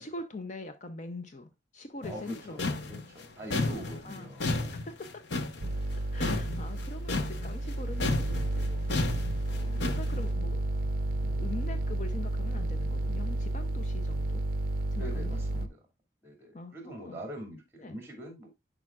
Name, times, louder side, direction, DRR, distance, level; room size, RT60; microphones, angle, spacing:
voice 1, 0.0-2.6 3.5-4.3 4.7-5.2 6.1-8.9 9.5-10.6 11.2-14.4 14.9-15.7 16.5-17.2 17.8-18.0, left 2 dB, 40° left, 0.6 m, -43 dB
sound 1, 2.0-7.7 8.0-10.2, left 2 dB, 75° left, 0.8 m, -32 dB
voice 2, 2.0-2.6 2.9-4.8 15.0-15.8 16.2-18.5, right 1 dB, 15° right, 2.5 m, -43 dB
sound 2, 5.6-15.7, right 2 dB, 50° right, 0.5 m, -31 dB
sound 3, 9.5-13.3, right 4 dB, 35° right, 2.0 m, -56 dB
10.5 x 5.0 x 2.4 m
head